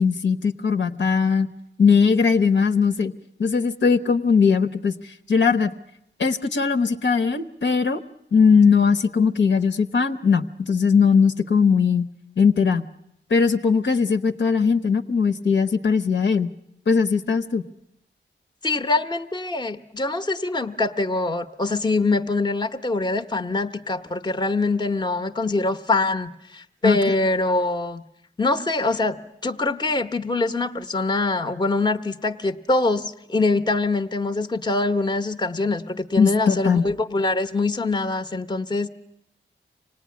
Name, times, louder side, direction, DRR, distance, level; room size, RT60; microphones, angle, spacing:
voice 1, 0.0-1.5 1.8-3.1 3.4-4.9 5.3-5.7 6.2-8.0 8.3-12.1 12.4-12.9 13.3-16.5 16.9-17.6 26.8-27.0 36.2-36.8, left 5 dB, 65° left, 9 dB, 1.0 m, -19 dB
voice 2, 18.6-28.0 28.4-38.9, left 3 dB, 20° left, 8 dB, 0.9 m, -24 dB
25.5 x 18.5 x 9.5 m, 0.81 s
wide cardioid pair, 95°, 20 cm